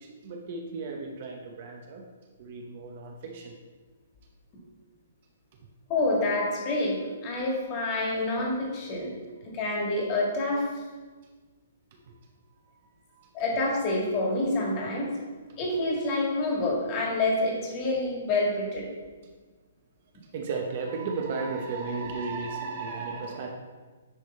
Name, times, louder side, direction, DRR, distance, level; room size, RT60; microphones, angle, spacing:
voice 1, 0.0-2.1 2.4-3.5 12.1-12.2 13.1-13.3 20.2-23.5, right 4 dB, 40° right, 2 dB, 0.8 m, -34 dB
voice 2, 5.9-7.0 7.2-9.1 9.5-10.6 13.3-15.1 15.6-18.8, left 2 dB, 25° left, -2 dB, 1.7 m, -27 dB
9.9 x 3.5 x 4.3 m, 1.4 s
hypercardioid pair, 165°, 0 cm